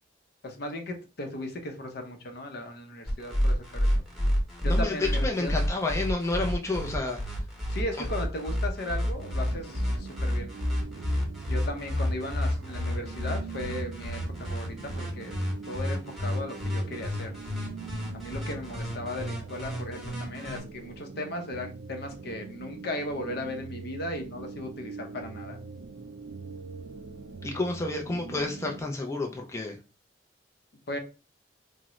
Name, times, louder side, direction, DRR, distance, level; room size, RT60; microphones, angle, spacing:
voice 1, 0.4-3.9 4.6-5.5 7.7-10.5 11.5-15.4 15.7-17.4 18.1-25.6 30.9-31.0, left 1 dB, 60° left, 5 dB, 0.6 m, -36 dB
sound 1, 3.1-20.6, equal, ahead, 0.9 m, -30 dB
voice 2, 5.2-7.2 27.4-29.8, left 2 dB, 15° left, 1 dB, 0.4 m, -30 dB
sound 2, 9.2-28.8, right 5 dB, 85° right, 0.4 m, -43 dB
3.6 x 2.0 x 2.9 m, 0.31 s
head